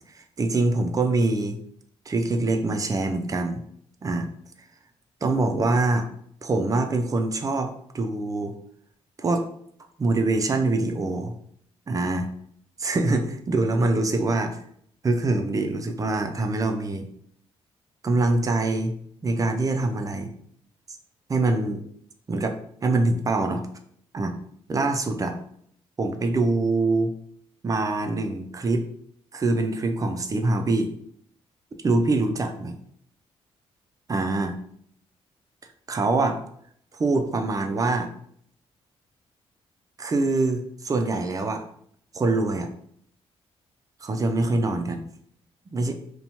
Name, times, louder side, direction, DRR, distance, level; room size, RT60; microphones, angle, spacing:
voice 1, 0.1-1.6 2.1-3.6 4.0-4.3 5.2-6.1 6.4-8.5 9.2-9.5 10.0-11.3 11.9-12.3 12.8-14.6 15.0-17.1 18.0-18.9 19.2-20.3 21.3-21.8 22.3-22.5 22.8-23.6 24.1-24.3 24.7-25.4 26.0-27.1 27.6-28.8 29.3-30.9 31.8-32.7 34.1-34.5 35.9-36.4 37.0-38.1 40.0-41.6 42.1-42.7 44.0-45.0 45.7-45.9, right 2 dB, 30° right, 6 dB, 0.4 m, -24 dB
2.6 x 2.2 x 2.8 m, 0.66 s
cardioid pair, 70°, 12 cm